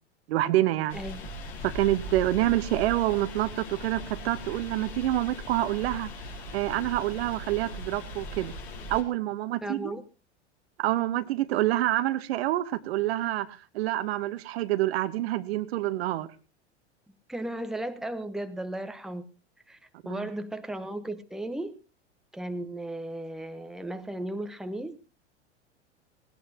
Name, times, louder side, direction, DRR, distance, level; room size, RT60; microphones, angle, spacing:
voice 1, 0.3-1.0 1.6-6.1 6.5-8.5 8.9-9.9 10.8-16.3 20.1-20.2, right 15 dB, 60° right, 12 dB, 1.1 m, -27 dB
sound 1, 0.9-9.0, left 1 dB, 65° left, 4.7 m, -39 dB
voice 2, 0.9-1.3 9.6-10.0 17.3-19.2 19.7-19.8 20.0-21.7 22.3-25.0, right 1 dB, ahead, 9 dB, 1.1 m, -35 dB
18.5 x 18.0 x 2.9 m, 0.32 s
figure-of-eight pair, 85°, 35 cm